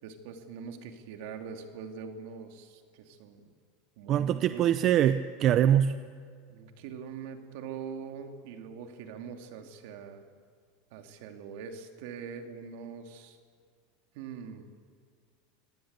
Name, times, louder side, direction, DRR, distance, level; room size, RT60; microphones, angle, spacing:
voice 1, 0.0-3.5 4.0-4.7 6.5-10.2 10.9-13.4 14.1-14.7, right 6 dB, 65° right, 5 dB, 2.8 m, -43 dB
voice 2, 4.1-6.0, right 10 dB, 40° right, 12 dB, 0.7 m, -24 dB
25.5 x 18.0 x 8.2 m, 2.1 s
supercardioid pair, 135°, 0 cm